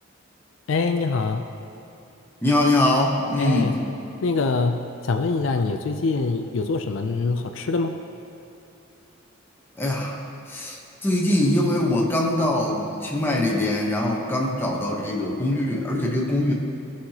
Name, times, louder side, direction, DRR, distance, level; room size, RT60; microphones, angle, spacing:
voice 1, 0.7-1.5 3.4-3.8 4.2-8.0, left 3 dB, 70° left, 5 dB, 0.5 m, -24 dB
voice 2, 2.4-3.8 9.8-10.2 10.5-16.5, left 1 dB, 10° left, -2 dB, 1.0 m, -22 dB
16.5 x 5.7 x 2.9 m, 2.8 s
head